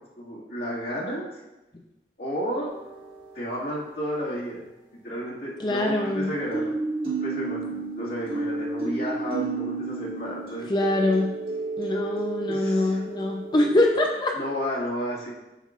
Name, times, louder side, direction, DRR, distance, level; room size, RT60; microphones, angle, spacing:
voice 1, 0.2-1.3 2.2-2.7 3.3-4.6 5.0-6.7 7.0-10.7 12.5-13.0 14.3-15.3, equal, 65° left, -7 dB, 2.0 m, -32 dB
sound 1, 2.7-3.5 6.1-13.8, right 3 dB, 30° right, 1.6 m, -32 dB
voice 2, 5.6-6.3 10.7-11.3 11.8-14.4, left 1 dB, 25° left, 2 dB, 0.5 m, -23 dB
8.1 x 5.8 x 2.4 m, 0.97 s
head